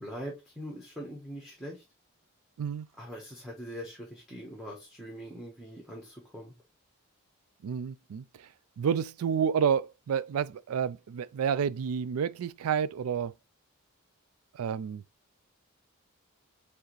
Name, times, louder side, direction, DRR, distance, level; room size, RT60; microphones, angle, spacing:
voice 1, 0.0-1.8 3.0-6.5, equal, ahead, 1.1 m, -42 dB
voice 2, 7.6-8.2 8.8-13.3 14.5-15.0, right 7 dB, 85° right, 0.4 m, -29 dB
4.7 x 3.5 x 3.1 m
head